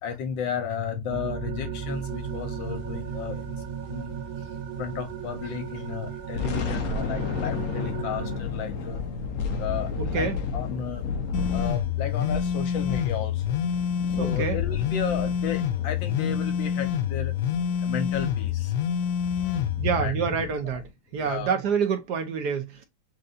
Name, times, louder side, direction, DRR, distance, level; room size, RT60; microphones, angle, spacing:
voice 1, 0.0-4.2 4.8-9.0 9.6-11.1 11.5-13.6 14.2-17.3 17.8-18.7 19.4-20.5 21.2-21.6, left 7 dB, 75° left, 1.6 m, -33 dB
sound 1, 1.1-8.4, right 7 dB, 85° right, 1.5 m, -35 dB
sound 2, 2.3-5.1 5.4-5.6 6.1-20.9, left 5 dB, 60° left, 0.9 m, -34 dB
voice 2, 10.0-10.4 14.2-14.6 19.8-20.8 21.1-22.8, right 6 dB, 65° right, 1.2 m, -27 dB
sound 3, 11.3-19.9, left 9 dB, 90° left, 0.8 m, -27 dB
7.7 x 2.7 x 2.4 m
omnidirectional pair, 2.2 m